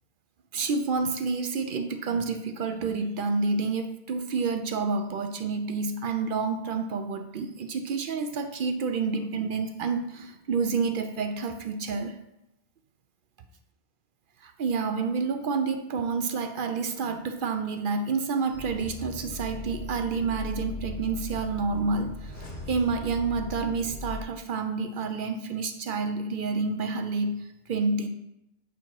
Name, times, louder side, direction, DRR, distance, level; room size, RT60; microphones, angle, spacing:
voice 1, 0.5-12.2 14.4-28.1, right 4 dB, 60° right, 7 dB, 0.7 m, -29 dB
sound 1, 18.5-24.2, left 2 dB, 85° left, 1.5 m, -38 dB
8.1 x 2.9 x 4.5 m, 0.82 s
omnidirectional pair, 1.0 m